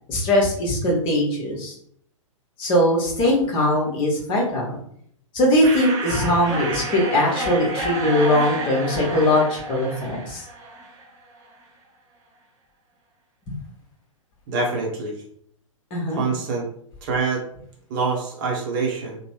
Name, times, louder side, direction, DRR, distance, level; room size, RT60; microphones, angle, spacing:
voice 1, 0.1-1.7 2.6-4.8 5.3-10.4 13.5-13.6 15.9-16.2, left 1 dB, 30° left, -2 dB, 1.1 m, -21 dB
sound 1, 5.6-11.2, right 2 dB, 20° right, 0.5 m, -30 dB
voice 2, 14.5-15.2 16.1-16.7 17.0-17.4 17.9-19.2, right 4 dB, 40° right, -1 dB, 0.8 m, -25 dB
3.1 x 2.1 x 3.0 m, 0.65 s
figure-of-eight pair, 110°, 17 cm